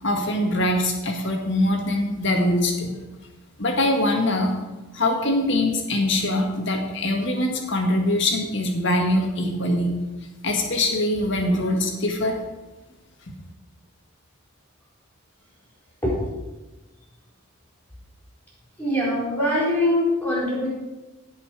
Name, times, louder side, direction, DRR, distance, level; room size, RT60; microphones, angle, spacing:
voice 1, 0.0-2.9 3.6-4.6 4.9-9.9 10.4-12.4, left 1 dB, 55° left, 2 dB, 1.9 m, -23 dB
voice 2, 18.8-20.7, left 1 dB, 10° left, -6 dB, 4.5 m, -22 dB
17.0 x 5.8 x 4.9 m, 1.1 s
head